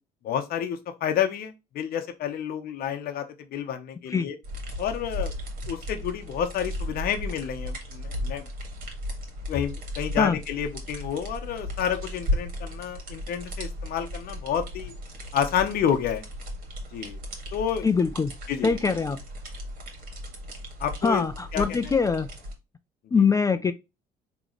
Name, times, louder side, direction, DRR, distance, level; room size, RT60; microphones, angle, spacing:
voice 1, 0.2-3.3 3.5-4.4 4.8-5.3 5.7-8.4 9.5-14.9 15.3-16.2 16.9-17.2 17.5-17.9 18.5-18.8 20.8-21.2 21.5-21.9, left 9 dB, 60° left, 0.7 m, -29 dB
sound 1, 4.4-22.5, left 1 dB, 55° right, 1.9 m, -36 dB
voice 2, 17.8-18.3 18.6-19.2 21.0-22.3 23.1-23.7, left 5 dB, 20° left, 0.3 m, -23 dB
3.9 x 3.0 x 3.0 m
cardioid pair, 110°, 17 cm